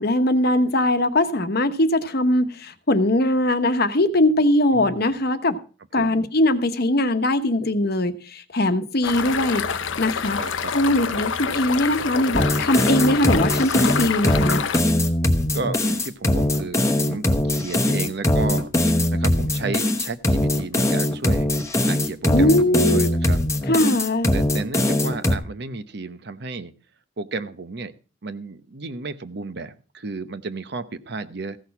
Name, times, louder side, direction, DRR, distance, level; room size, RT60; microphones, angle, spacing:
voice 1, 0.0-5.6 5.9-10.4 10.7-14.6 22.3-23.1 23.7-24.3, left 1 dB, 55° left, 1.0 m, -21 dB
voice 2, 4.7-5.2 6.0-6.3 10.4-10.7 15.5-21.5 21.9-23.4 24.3-26.7 27.2-27.9 28.2-31.6, right 3 dB, 60° right, 0.9 m, -33 dB
sound 1, 9.0-14.8, left 6 dB, 80° left, 0.7 m, -27 dB
sound 2, 12.3-25.3, left 1 dB, 15° left, 1.0 m, -21 dB
15.5 x 6.4 x 5.8 m
head